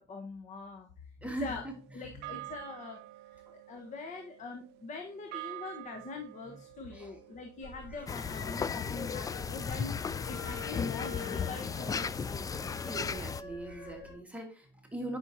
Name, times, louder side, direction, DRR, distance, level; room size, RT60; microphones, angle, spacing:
voice 1, 0.1-0.9 1.4-1.6 1.9-3.0 3.3-10.0 10.3-12.5, left 3 dB, 45° left, 3 dB, 1.2 m, -43 dB
voice 2, 1.2-2.5 6.4-6.6 6.9-7.2 7.9-8.2 10.9-11.2 12.8-15.2, right 1 dB, 10° right, 1 dB, 1.5 m, -42 dB
sound 1, 1.3-9.8, right 20 dB, 90° right, 0.5 m, -49 dB
sound 2, 7.6-14.1, left 5 dB, 80° left, 2.8 m, -46 dB
sound 3, 8.1-13.4, left 6 dB, 20° left, 0.3 m, -35 dB
10.0 x 5.6 x 2.7 m, 0.39 s
cardioid pair, 110°, 17 cm